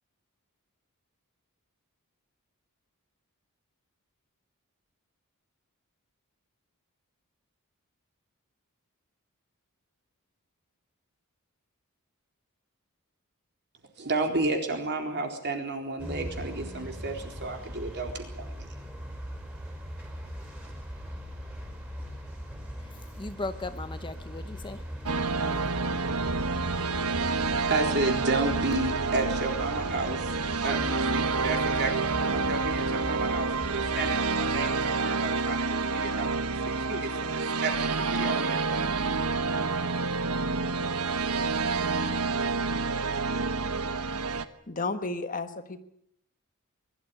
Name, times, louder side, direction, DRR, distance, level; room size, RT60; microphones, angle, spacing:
voice 1, 14.0-18.8 27.7-30.4 30.6-39.2, right 2 dB, 50° right, 4.1 m, -32 dB
sound 1, 16.0-34.3, equal, 5° right, 4.9 m, -40 dB
voice 2, 22.8-25.9, left 2 dB, 20° left, 0.9 m, -39 dB
sound 2, 25.1-44.5, right 4 dB, 75° right, 1.3 m, -28 dB
voice 3, 44.7-45.8, left 3 dB, 40° left, 1.4 m, -32 dB
22.0 x 13.0 x 10.0 m
head